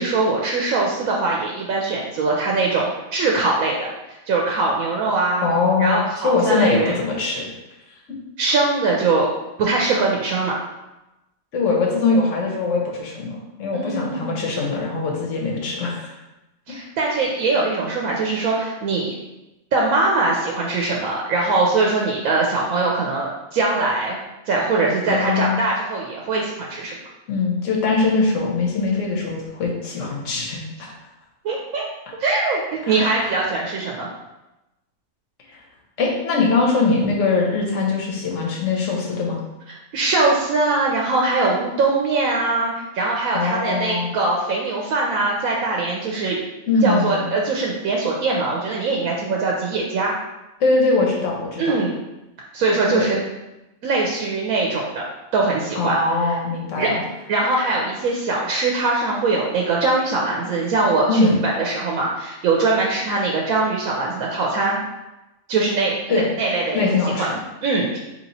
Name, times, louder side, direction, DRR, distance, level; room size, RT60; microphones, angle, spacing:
voice 1, 0.0-3.9 4.3-5.5 5.8-6.9 8.4-9.3 9.6-10.6 13.7-14.4 16.7-19.1 19.7-24.2 24.5-26.9 31.4-31.9 32.2-34.1 39.9-46.4 46.8-50.1 51.6-51.9 52.5-53.2 53.8-55.0 55.3-56.0 56.2-56.3 56.8-56.9 57.3-64.8 65.5-66.8 67.2-67.3 67.6-68.0, right 3 dB, 80° right, -2 dB, 1.0 m, -22 dB
voice 2, 5.4-7.5 11.5-16.1 25.1-25.6 27.3-30.9 32.9-33.4 35.5-35.6 36.0-39.4 43.3-44.1 46.7-47.2 50.6-51.8 52.9-53.2 55.7-57.0 61.1-61.4 66.1-66.2 66.7-67.3, left 3 dB, 65° left, -1 dB, 1.2 m, -22 dB
3.1 x 2.9 x 4.0 m, 0.98 s
omnidirectional pair, 1.5 m